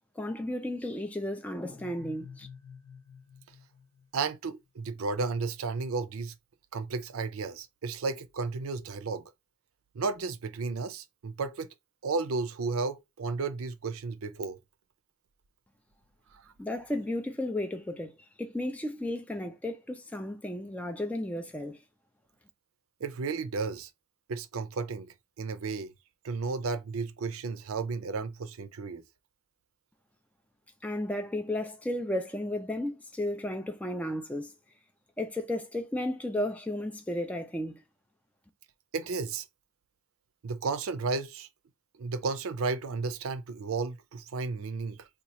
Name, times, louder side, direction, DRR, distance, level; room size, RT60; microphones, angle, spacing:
voice 1, 0.2-2.5 16.6-21.8 30.8-34.5 35.2-37.8, left 1 dB, 5° left, 0.3 m, -34 dB
sound 1, 1.7-4.5, left 6 dB, 45° left, 0.8 m, -50 dB
voice 2, 4.1-6.3 6.7-9.2 9.9-11.7 12.0-14.6 23.0-23.9 24.3-25.9 26.2-29.0 38.9-39.5 40.4-41.5 42.0-45.1, right 4 dB, 85° right, 0.5 m, -33 dB
2.9 x 2.3 x 4.1 m
head